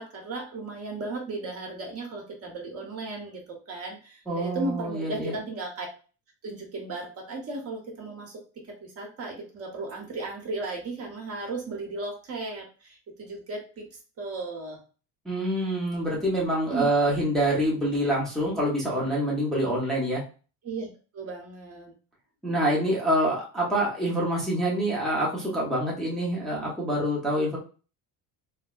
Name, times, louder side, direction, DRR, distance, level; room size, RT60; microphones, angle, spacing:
voice 1, 0.0-5.9 6.4-8.4 8.8-13.9 14.2-14.8 16.7-16.9 20.6-20.9 21.1-21.9, right 3 dB, 35° right, 0 dB, 1.0 m, -35 dB
voice 2, 4.3-5.3 15.3-20.2 22.4-27.6, right 1 dB, ahead, -6 dB, 0.8 m, -26 dB
3.2 x 2.8 x 2.4 m, 0.36 s
cardioid pair, 150°, 40 cm